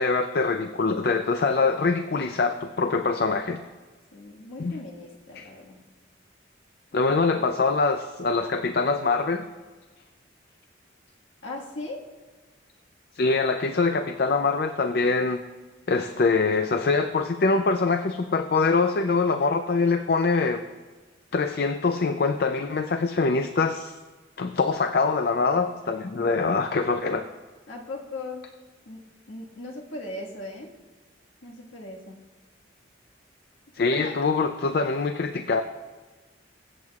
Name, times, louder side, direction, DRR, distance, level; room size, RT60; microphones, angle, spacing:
voice 1, 0.0-3.6 4.6-4.8 5.4-5.5 6.9-9.5 13.1-15.4 15.9-20.6 21.3-23.9 24.4-27.2 33.7-35.6, left 4 dB, 55° left, 8 dB, 0.4 m, -24 dB
voice 2, 4.1-5.8 7.3-7.5 11.4-12.0 27.7-28.5 28.8-30.7 31.4-32.2 33.9-34.1, left 2 dB, 90° left, -1 dB, 1.7 m, -38 dB
23.5 x 8.0 x 2.4 m, 1.3 s
head